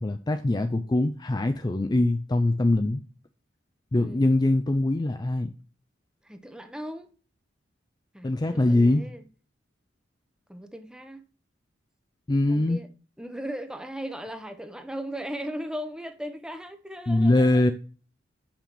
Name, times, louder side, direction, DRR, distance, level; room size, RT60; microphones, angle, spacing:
voice 1, 0.0-3.0 3.9-5.5 8.2-9.0 12.3-12.8 17.1-17.7, left 2 dB, 20° left, 0.4 m, -23 dB
voice 2, 6.3-7.1 8.1-9.2 10.5-11.2 12.5-12.9 13.2-17.6, equal, 5° right, 0.8 m, -37 dB
5.8 x 5.7 x 6.8 m
head